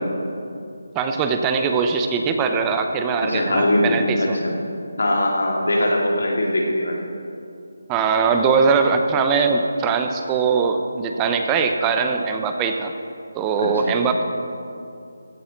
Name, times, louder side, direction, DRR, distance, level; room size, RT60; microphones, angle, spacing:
voice 1, 0.9-4.4 7.9-12.9 13.3-14.2, right 5 dB, 15° right, 5 dB, 0.5 m, -21 dB
voice 2, 3.3-4.5 5.0-7.0 13.6-14.0, left 1 dB, 75° left, 0 dB, 2.1 m, -21 dB
15.5 x 9.1 x 3.9 m, 2.5 s
figure-of-eight pair, 160°, 0 cm